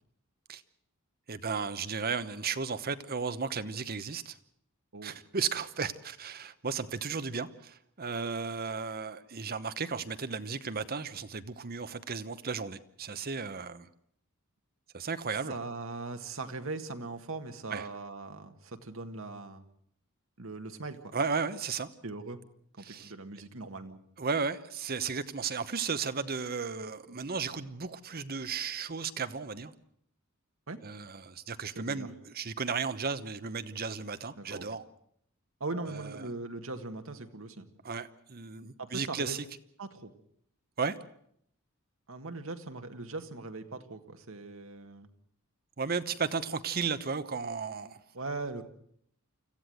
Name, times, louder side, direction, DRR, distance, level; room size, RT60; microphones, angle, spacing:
voice 1, 1.3-4.4 5.0-13.9 14.9-15.5 17.7-17.9 21.1-21.9 22.8-23.1 24.2-29.7 30.8-34.8 35.7-36.3 37.8-39.4 40.8-41.0 45.8-48.0, right 5 dB, 45° right, 12 dB, 1.0 m, -34 dB
voice 2, 15.5-19.6 20.4-21.1 22.0-22.4 22.8-24.0 30.7-30.8 31.8-32.1 34.4-34.7 35.6-37.7 38.8-39.4 39.8-40.1 42.1-45.1 48.1-48.6, right 3 dB, 65° right, 6 dB, 1.8 m, -40 dB
25.5 x 15.0 x 7.9 m, 0.69 s
head